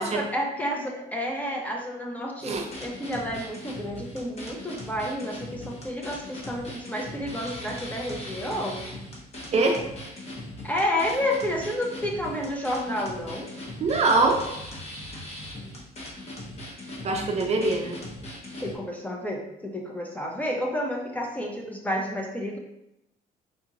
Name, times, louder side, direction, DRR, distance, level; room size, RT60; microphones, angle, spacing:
voice 1, 0.0-8.9 10.6-13.5 18.6-22.6, left 1 dB, 10° left, 0 dB, 0.6 m, -30 dB
sound 1, 2.4-18.7, left 1 dB, 40° left, 0.9 m, -39 dB
voice 2, 9.5-9.9 13.8-14.5 17.0-18.0, right 3 dB, 40° right, 2 dB, 0.5 m, -23 dB
3.8 x 2.8 x 2.5 m, 0.86 s
cardioid pair, 110°, 17 cm